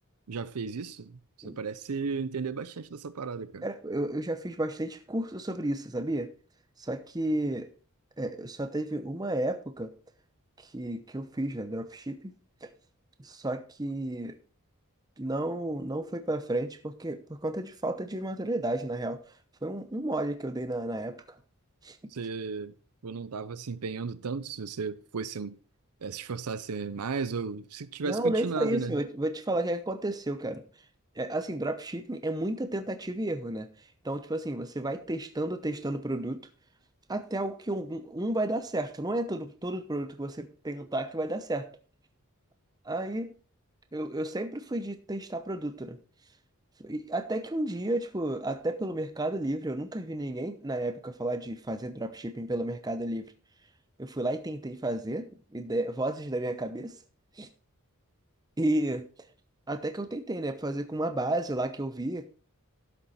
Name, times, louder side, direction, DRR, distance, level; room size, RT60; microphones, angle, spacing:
voice 1, 0.3-3.6 22.1-22.8 23.0-25.6 26.0-28.9, right 5 dB, 85° right, 0.6 m, -35 dB
voice 2, 3.6-6.3 6.8-7.7 8.2-9.9 10.6-12.3 12.6-12.7 13.2-14.4 15.2-19.3 19.6-21.4 21.8-22.0 28.0-30.6 31.2-33.7 34.0-36.4 37.1-41.7 42.8-43.3 43.9-46.0 46.8-53.3 54.0-56.9 57.4-57.5 58.6-59.1 59.7-62.3, right 1 dB, 15° right, 0.8 m, -32 dB
12.5 x 7.1 x 4.2 m
head